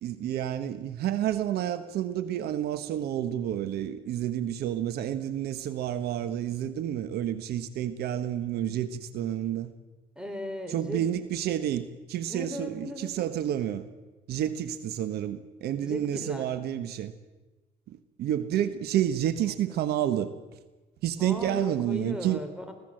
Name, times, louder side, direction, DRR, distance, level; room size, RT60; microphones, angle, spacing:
voice 1, 0.0-9.7 10.7-13.9 14.3-17.1 17.9-20.3 21.0-22.4, right 11 dB, 70° right, 12 dB, 1.3 m, -30 dB
voice 2, 10.2-11.0 12.3-13.2 15.8-16.5 19.7-19.9 21.2-22.7, left 1 dB, 5° right, 6 dB, 4.1 m, -37 dB
25.0 x 16.5 x 7.8 m, 1.2 s
cardioid pair, 110°, 17 cm